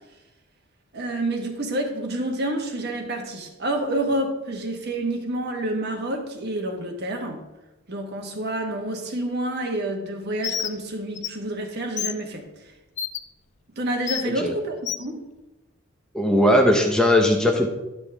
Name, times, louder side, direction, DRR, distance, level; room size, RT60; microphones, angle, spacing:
voice 1, 0.9-7.4 7.9-12.7 13.7-15.3, right 1 dB, 55° right, 1.3 m, -28 dB
Bird, 10.4-10.7 11.2-11.3 12.0-12.1 13.0-13.2 14.1-14.2 14.9-15.0, left 9 dB, 35° left, 0.4 m, -28 dB
voice 2, 16.1-17.7, left 1 dB, 5° left, 0.8 m, -18 dB
11.0 x 6.0 x 3.4 m
head